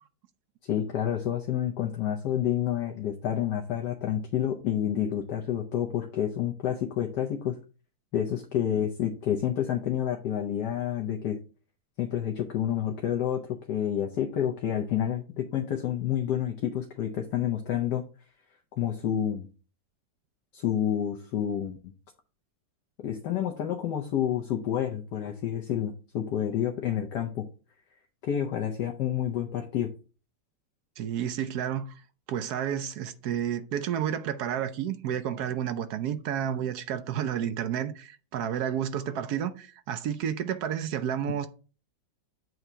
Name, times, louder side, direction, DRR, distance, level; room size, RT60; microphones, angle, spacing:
voice 1, 0.6-7.6 8.1-11.4 12.0-18.0 18.7-19.5 20.5-21.9 23.0-27.4 28.2-29.9, left 10 dB, 70° left, 1.3 m, -29 dB
voice 2, 31.0-31.9 32.3-41.5, right 9 dB, 70° right, 1.1 m, -31 dB
7.8 x 2.8 x 6.0 m
omnidirectional pair, 2.0 m